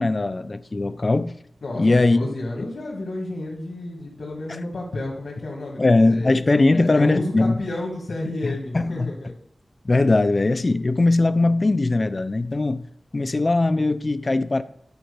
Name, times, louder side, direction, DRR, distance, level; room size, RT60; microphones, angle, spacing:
voice 1, 0.0-1.3 1.8-2.2 2.6-2.7 4.5-4.6 5.8-7.6 8.4-9.1 9.8-12.9 13.1-14.6, left 2 dB, 40° left, 0.5 m, -20 dB
voice 2, 1.6-6.4 6.7-9.4, left 2 dB, 70° left, 1.8 m, -31 dB
10.5 x 4.4 x 6.8 m
wide cardioid pair, 95°, 0 cm